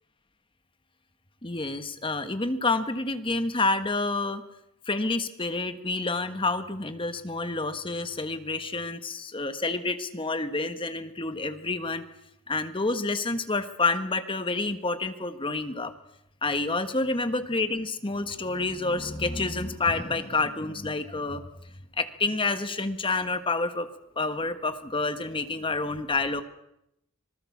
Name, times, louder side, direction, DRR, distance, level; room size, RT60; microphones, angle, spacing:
voice 1, 1.4-4.4 4.9-12.0 12.5-15.9 16.4-21.4 22.0-23.9 24.2-26.4, left 3 dB, 25° left, 10 dB, 1.4 m, -28 dB
26.0 x 19.5 x 7.3 m, 0.82 s
head